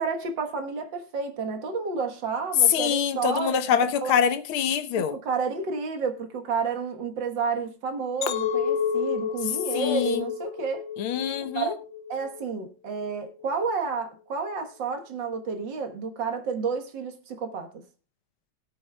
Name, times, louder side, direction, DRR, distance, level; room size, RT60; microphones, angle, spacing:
voice 1, 0.0-3.6 4.0-4.1 5.0-10.9 11.6-11.7 12.1-17.8, right 5 dB, 65° right, 2.0 m, -30 dB
voice 2, 2.7-5.1 9.7-10.3 11.0-11.7, left 8 dB, 90° left, 1.8 m, -25 dB
Chink clink, 8.2-12.6 13.0-13.5, left 7 dB, 70° left, 1.4 m, -30 dB
21.0 x 8.4 x 2.3 m
omnidirectional pair, 2.2 m